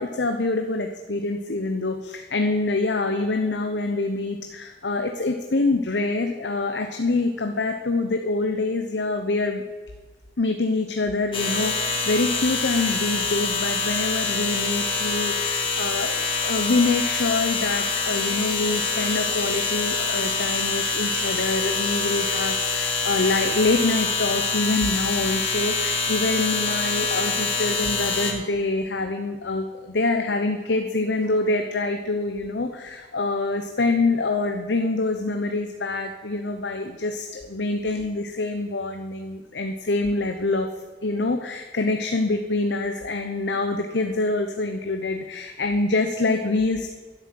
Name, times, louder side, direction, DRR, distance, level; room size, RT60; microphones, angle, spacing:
voice 1, 0.0-9.6 10.4-40.7 41.0-46.9, left 3 dB, 80° left, 5 dB, 0.9 m, -25 dB
sound 1, 11.3-28.3, left 4 dB, 30° left, 2.2 m, -25 dB
11.5 x 11.0 x 7.7 m, 1.4 s
head